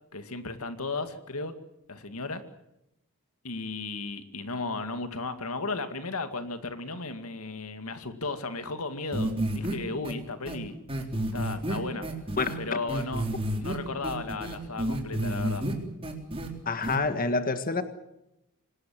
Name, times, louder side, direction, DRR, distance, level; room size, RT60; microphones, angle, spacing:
voice 1, 0.1-1.5 1.9-2.4 3.4-10.8 11.3-12.1 12.6-13.3 13.6-15.7, left 3 dB, 85° left, 9 dB, 2.2 m, -35 dB
sound 1, 9.1-9.7 10.0-10.1 10.5-10.6 10.9-12.5 12.9-13.7 14.0-15.7 16.0-16.5 16.8-17.0, right 1 dB, 25° right, 4.0 m, -30 dB
voice 2, 16.6-17.8, left 3 dB, 40° left, 9 dB, 1.7 m, -27 dB
26.5 x 19.5 x 7.6 m, 0.87 s
head